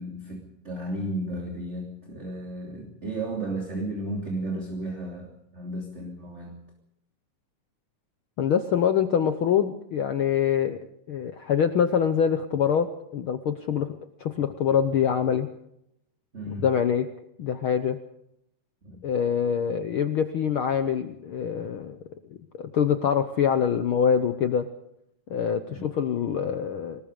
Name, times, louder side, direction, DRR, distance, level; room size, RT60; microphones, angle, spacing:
voice 1, 0.0-6.6 16.3-16.6 18.8-19.0 25.7-25.9, right 1 dB, 20° right, 1 dB, 3.1 m, -34 dB
voice 2, 8.4-10.8 11.1-15.5 16.5-17.1 17.4-18.0 19.0-22.0 22.5-24.7 25.3-27.0, left 8 dB, 80° left, 9 dB, 1.2 m, -25 dB
25.5 x 20.5 x 5.1 m, 0.79 s
omnidirectional pair, 3.7 m